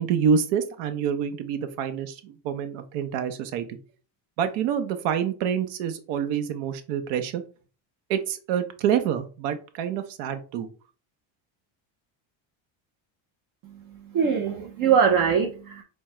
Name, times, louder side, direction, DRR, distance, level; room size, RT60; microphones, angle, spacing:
voice 1, 0.0-3.8 4.4-7.4 8.1-10.7, right 8 dB, 80° right, 8 dB, 0.7 m, -27 dB
voice 2, 13.6-15.8, right 7 dB, 45° right, 4 dB, 0.6 m, -23 dB
4.5 x 2.2 x 4.2 m, 0.37 s
cardioid pair, 140°, 49 cm